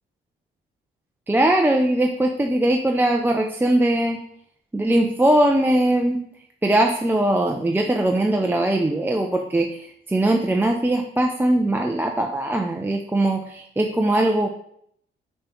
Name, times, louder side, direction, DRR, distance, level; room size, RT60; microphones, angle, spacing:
voice 1, 1.3-4.2 4.7-6.2 6.6-14.5, right 1 dB, 10° right, 2 dB, 0.6 m, -20 dB
5.3 x 5.3 x 4.4 m, 0.70 s
cardioid pair, 90°, 20 cm